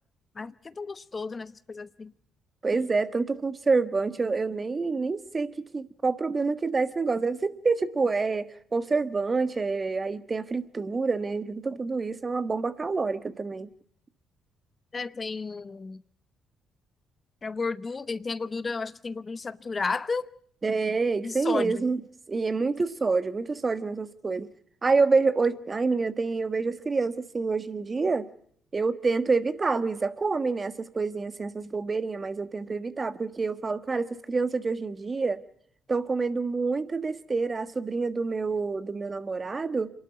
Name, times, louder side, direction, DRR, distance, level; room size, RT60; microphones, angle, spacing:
voice 1, 0.3-2.1 14.9-16.0 17.4-20.3 21.2-21.8, left 4 dB, 35° left, 0.8 m, -33 dB
voice 2, 2.6-13.7 20.6-22.0 22.3-24.5 24.8-28.3 28.7-35.4 35.9-39.9, right 4 dB, 35° right, 1.5 m, -27 dB
27.0 x 12.0 x 9.4 m
hypercardioid pair, 50°, 0 cm